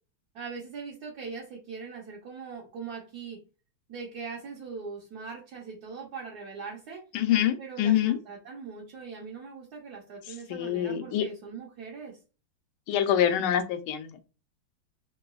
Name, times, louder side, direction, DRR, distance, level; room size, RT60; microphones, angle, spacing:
voice 1, 0.3-3.4 3.9-7.0 7.6-12.2, right 5 dB, 60° right, -3 dB, 1.2 m, -41 dB
voice 2, 7.1-8.2 10.5-11.2 12.9-14.1, left 10 dB, 80° left, 7 dB, 1.4 m, -25 dB
3.8 x 2.3 x 2.3 m, 0.32 s
omnidirectional pair, 2.3 m